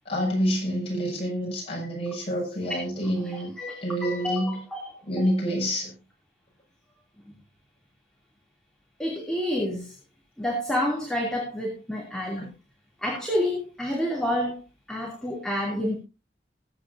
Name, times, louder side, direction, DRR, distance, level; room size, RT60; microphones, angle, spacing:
voice 1, 0.0-3.5 3.8-4.6 5.1-5.9 12.4-12.5, equal, 35° left, -2 dB, 6.6 m, -27 dB
voice 2, 3.2-5.3 9.0-10.0 10.4-12.5 13.0-14.6 14.9-16.0, left 1 dB, 5° left, -3 dB, 2.8 m, -29 dB
20.5 x 8.9 x 2.7 m, 0.28 s
head